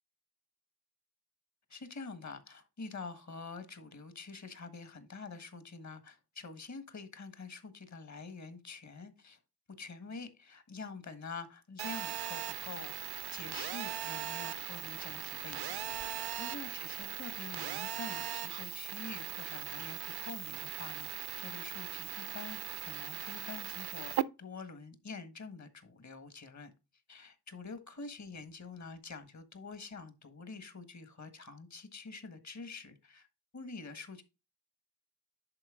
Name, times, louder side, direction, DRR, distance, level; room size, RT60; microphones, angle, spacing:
voice 1, 1.7-9.4 9.8-15.9 16.4-26.7 27.1-33.3 33.5-34.2, left 4 dB, 45° left, 1.6 m, -47 dB
Telephone, 11.8-24.2, right 11 dB, 75° right, 0.6 m, -39 dB
10.5 x 4.5 x 3.7 m
wide cardioid pair, 120°, 39 cm